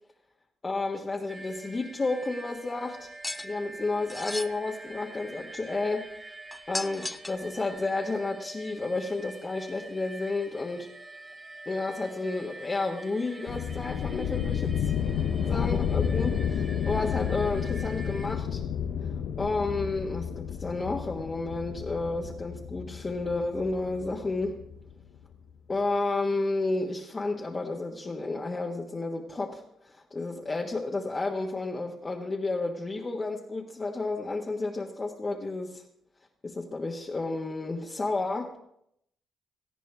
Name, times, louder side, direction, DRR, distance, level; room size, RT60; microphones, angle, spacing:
voice 1, 0.6-3.1 3.4-6.1 6.7-10.9 11.6-14.9 15.4-18.6 19.4-24.6 25.7-35.8 36.4-38.5, left 3 dB, 30° left, -2 dB, 1.5 m, -31 dB
sound 1, 1.3-18.4, right 2 dB, 25° right, 1.7 m, -46 dB
sound 2, 3.2-3.5 4.1-4.5 6.5-7.4, left 1 dB, 10° left, 0.5 m, -35 dB
sound 3, 13.5-24.9, left 8 dB, 75° left, 0.8 m, -31 dB
18.0 x 14.0 x 3.5 m, 0.75 s
cardioid pair, 90°, 0 cm